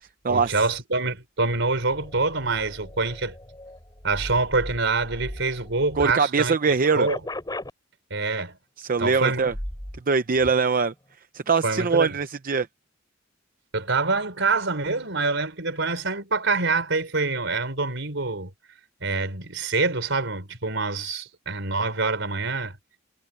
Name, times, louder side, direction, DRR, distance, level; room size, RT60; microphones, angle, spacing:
voice 1, 0.3-3.4 4.0-7.2 8.1-8.6 9.0-9.4 11.6-12.2 13.7-18.5 19.0-22.8, right 3 dB, 65° right, 5.1 m, -26 dB
sound 1, 1.9-6.1 6.5-7.7 9.4-10.0 10.4-10.5, left 1 dB, 20° left, 4.4 m, -38 dB
voice 2, 6.0-7.1 8.8-9.5 10.1-10.9 11.3-12.7, right 5 dB, 45° right, 0.6 m, -22 dB
head